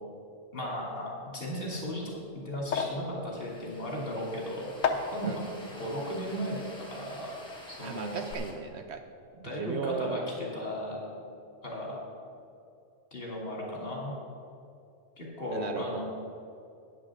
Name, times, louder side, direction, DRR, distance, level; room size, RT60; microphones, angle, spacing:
voice 1, 0.5-2.0 2.4-5.4 5.7-6.6 6.9-7.3 7.7-8.2 9.4-11.0 11.6-12.0 13.1-14.1 15.2-16.0, equal, 45° left, -4 dB, 2.9 m, -35 dB
sound 1, 1.6-7.8 8.1-8.3, left 5 dB, 80° left, 1.2 m, -37 dB
sound 2, 3.3-8.5, left 1 dB, 5° left, 1.7 m, -50 dB
voice 2, 7.8-9.0 9.6-10.4 15.5-16.0, right 6 dB, 65° right, 6 dB, 0.8 m, -36 dB
9.8 x 6.3 x 7.3 m, 2.5 s
omnidirectional pair, 1.3 m